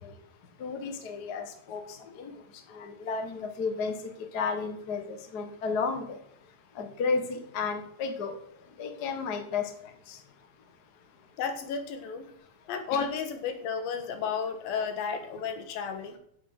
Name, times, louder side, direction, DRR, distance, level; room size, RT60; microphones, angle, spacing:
voice 1, 0.6-1.8 2.2-2.3 2.7-3.9 4.3-6.2 6.8-8.3 8.8-9.6, left 4 dB, 40° left, 5 dB, 1.4 m, -32 dB
voice 2, 11.4-12.3 12.7-16.2, left 6 dB, 85° left, 8 dB, 3.1 m, -32 dB
15.5 x 5.8 x 6.3 m, 0.69 s
omnidirectional pair, 4.1 m